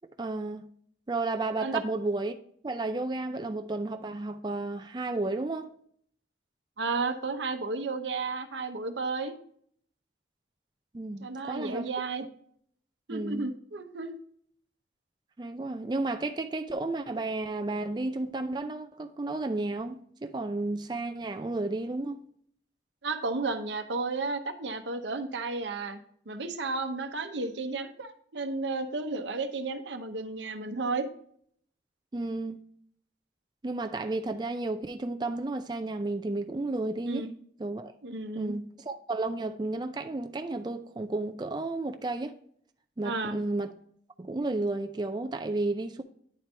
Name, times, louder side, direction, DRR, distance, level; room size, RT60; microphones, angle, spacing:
voice 1, 0.2-0.7 1.1-2.3 2.6-5.7 10.9-11.9 13.1-13.5 15.4-22.2 32.1-32.6 33.6-37.3 37.6-37.9 38.3-42.3 43.0-43.7 44.2-46.0, right 2 dB, 25° right, 0.4 m, -32 dB
voice 2, 6.8-9.3 11.2-12.2 13.1-14.1 23.0-26.0 26.3-31.1 37.0-37.3 38.0-38.5 43.0-43.4, right 3 dB, 90° right, 0.8 m, -33 dB
9.7 x 4.5 x 3.3 m
head